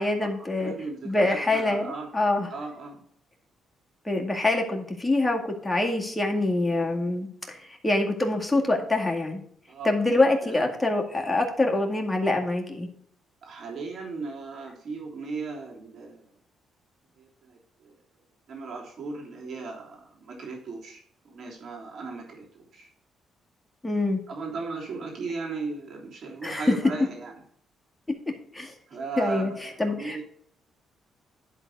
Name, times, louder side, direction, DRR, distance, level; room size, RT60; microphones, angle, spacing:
voice 1, 0.0-0.7 1.0-2.5 4.1-9.4 9.8-12.9 23.8-24.2 26.4-26.7 28.5-28.7 29.2-30.2, left 2 dB, 10° left, 0 dB, 2.0 m, -25 dB
voice 2, 0.6-2.1 2.5-3.0 9.7-10.8 13.4-16.3 17.2-18.0 18.5-22.9 24.3-27.3 28.9-30.2, right 4 dB, 65° right, -1 dB, 3.2 m, -37 dB
11.0 x 4.0 x 6.4 m, 0.65 s
cardioid pair, 90°, 0 cm